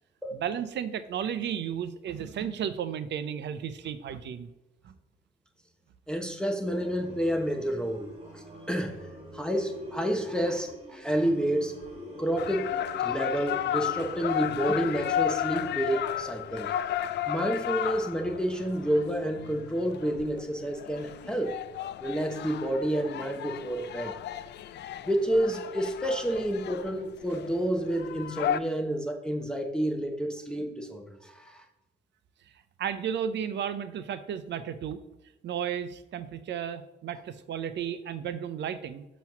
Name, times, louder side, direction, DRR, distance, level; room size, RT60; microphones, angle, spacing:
voice 1, 0.3-4.5 4.8-4.9 32.8-35.0 35.4-39.0, right 8 dB, 65° right, 12 dB, 0.6 m, -33 dB
voice 2, 6.1-9.1 9.3-11.8 12.2-12.7 13.0-16.7 17.3-21.6 22.0-24.1 25.0-31.6, right 1 dB, 5° left, 2 dB, 0.9 m, -29 dB
sound 1, 6.6-15.2, left 1 dB, 30° right, 2.1 m, -45 dB
sound 2, 12.4-28.6, left 10 dB, 60° left, 0.4 m, -33 dB
7.0 x 3.1 x 5.8 m, 1.0 s
cardioid pair, 90°, 20 cm